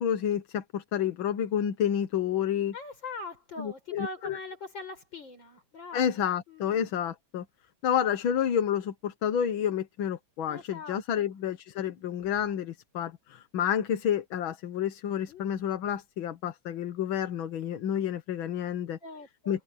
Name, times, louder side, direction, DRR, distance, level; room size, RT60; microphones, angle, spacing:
voice 1, 0.0-2.7 3.6-4.4 5.9-7.5 7.8-19.0 19.5-19.6, left 9 dB, 85° left, 1.9 m, -29 dB
voice 2, 2.7-6.2 6.5-6.9 10.5-11.3 11.8-12.0 15.3-15.5 19.0-19.6, left 3 dB, 70° left, 6.5 m, -42 dB
omnidirectional pair, 2.1 m